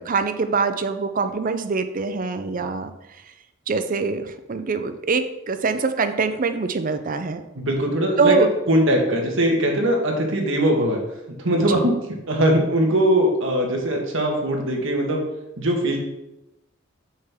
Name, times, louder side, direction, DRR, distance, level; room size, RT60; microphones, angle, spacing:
voice 1, 0.0-2.9 3.7-7.4 8.2-8.5 11.6-11.8, right 4 dB, 40° right, 9 dB, 0.5 m, -24 dB
voice 2, 7.5-8.3 8.7-11.0 11.4-11.9 12.3-15.2 15.6-16.0, right 1 dB, 65° right, 1 dB, 1.5 m, -20 dB
6.4 x 5.9 x 3.6 m, 0.93 s
head